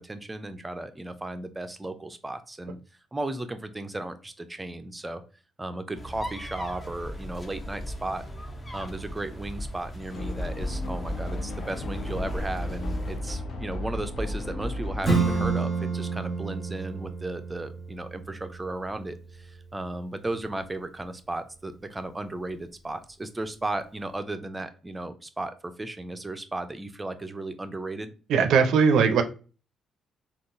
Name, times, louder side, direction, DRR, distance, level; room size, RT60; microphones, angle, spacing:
voice 1, 0.0-2.8 3.1-5.2 5.6-8.2 8.7-28.1, right 2 dB, 15° right, 10 dB, 0.4 m, -35 dB
sound 1, 5.9-13.2, equal, 25° left, 0.6 m, -39 dB
sound 2, 10.1-15.5, left 1 dB, 65° left, 0.7 m, -33 dB
Acoustic guitar / Strum, 15.0-20.3, right 4 dB, ahead, 1.4 m, -30 dB
voice 2, 28.3-29.2, right 6 dB, 75° right, 8 dB, 0.4 m, -19 dB
3.6 x 2.3 x 2.5 m, 0.35 s
cardioid pair, 90°, 0 cm